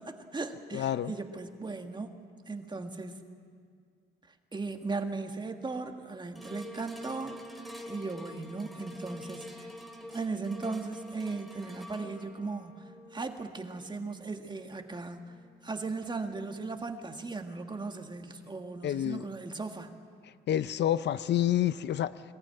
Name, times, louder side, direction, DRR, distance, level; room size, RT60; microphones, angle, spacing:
voice 1, 0.0-2.1 2.5-3.2 4.5-9.7 10.1-15.3 15.6-19.9, right 3 dB, 20° right, 1.7 m, -37 dB
voice 2, 0.7-1.1 18.8-19.3 20.5-22.2, left 11 dB, 60° left, 0.5 m, -28 dB
sound 1, 6.4-16.8 17.3-17.4, equal, ahead, 2.3 m, -48 dB
22.5 x 14.5 x 9.0 m
cardioid pair, 90°, 20 cm